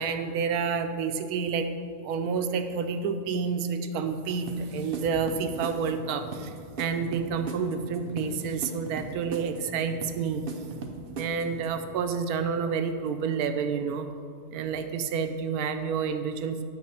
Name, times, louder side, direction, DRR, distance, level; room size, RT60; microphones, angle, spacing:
voice 1, 0.0-1.7 2.0-10.4 11.1-14.1 14.5-16.6, right 6 dB, 90° right, 8 dB, 1.1 m, -29 dB
sound 1, 4.5-11.9, right 3 dB, 50° right, 0.8 m, -39 dB
9.6 x 6.5 x 4.3 m, 2.3 s
omnidirectional pair, 1.5 m